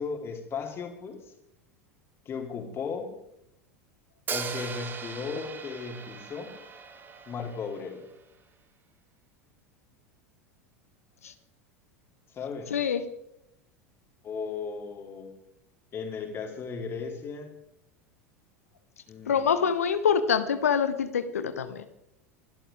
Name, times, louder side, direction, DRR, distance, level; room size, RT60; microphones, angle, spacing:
voice 1, 0.0-1.3 2.3-3.1 4.3-6.5 7.3-8.1 12.3-12.7 14.2-15.3 15.9-17.5 19.1-19.6, left 5 dB, 30° left, 2 dB, 3.8 m, -36 dB
Hi-hat, 4.3-8.2, right 6 dB, 25° right, 1.7 m, -39 dB
voice 2, 12.7-13.0 19.2-21.8, left 7 dB, 70° left, 11 dB, 1.1 m, -25 dB
26.0 x 13.0 x 3.6 m, 0.79 s
figure-of-eight pair, 80°, 8 cm